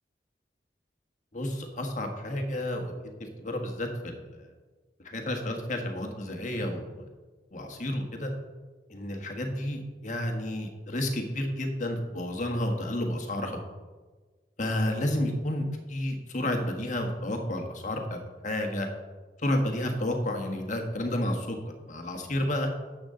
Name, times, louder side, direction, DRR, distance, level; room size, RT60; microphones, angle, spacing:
voice 1, 1.3-3.1 3.4-4.2 5.0-7.1 7.5-8.3 8.9-13.6 14.6-18.9 19.4-21.6 21.9-22.7, left 1 dB, 45° left, 3 dB, 1.4 m, -31 dB
12.0 x 8.1 x 3.8 m, 1.3 s
head